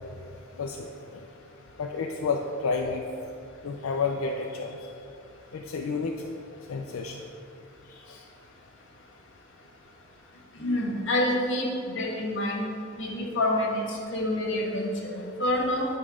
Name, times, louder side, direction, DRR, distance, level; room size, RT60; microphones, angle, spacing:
voice 1, 0.6-1.2 1.8-3.0 3.6-4.9 5.5-6.2 6.7-7.2 7.9-8.2, left 4 dB, 85° left, 2 dB, 0.4 m, -31 dB
voice 2, 10.6-11.7 11.9-12.6 13.0-15.9, left 1 dB, 60° left, -1 dB, 1.4 m, -27 dB
9.4 x 3.7 x 4.9 m, 2.5 s
head